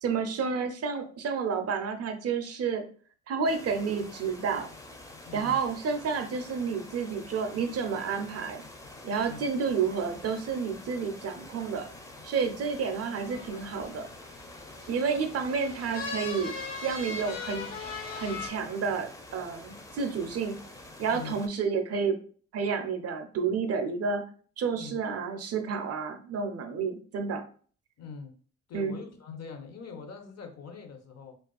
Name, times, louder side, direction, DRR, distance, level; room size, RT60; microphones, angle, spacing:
voice 1, 0.0-2.8 3.3-4.7 5.3-8.6 9.0-11.9 12.2-14.1 14.9-16.5 16.8-17.7 18.1-20.6 21.0-22.2 22.5-24.2 24.6-27.4 28.7-29.0, right 5 dB, 45° right, 0.5 m, -30 dB
sound 1, 3.4-21.5, left 2 dB, 10° left, 0.5 m, -47 dB
voice 2, 5.2-5.6 9.3-9.5 21.1-21.4 24.8-24.9 28.0-28.3 28.7-31.4, left 5 dB, 45° left, 0.7 m, -43 dB
sound 2, 13.3-18.5, left 4 dB, 75° left, 1.2 m, -39 dB
2.4 x 2.3 x 2.3 m
hypercardioid pair, 45°, 36 cm